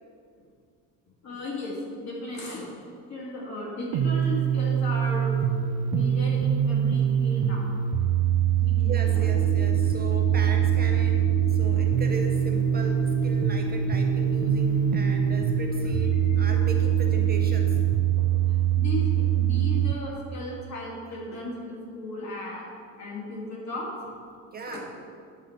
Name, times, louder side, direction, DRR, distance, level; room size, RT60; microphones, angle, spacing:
voice 1, 1.2-2.7 3.1-5.4 5.9-7.7 8.6-9.4 18.2-22.7 23.0-23.9 24.6-24.9, left 2 dB, 55° left, -3 dB, 2.5 m, -36 dB
sound 1, 3.9-19.9, right 10 dB, 80° right, 0.6 m, -24 dB
voice 2, 8.8-17.8 24.5-24.9, right 3 dB, 30° right, 2 dB, 0.6 m, -37 dB
sound 2, 9.1-17.8, left 5 dB, 80° left, 1.9 m, -34 dB
9.9 x 6.9 x 5.1 m, 2.2 s
cardioid pair, 180°, 34 cm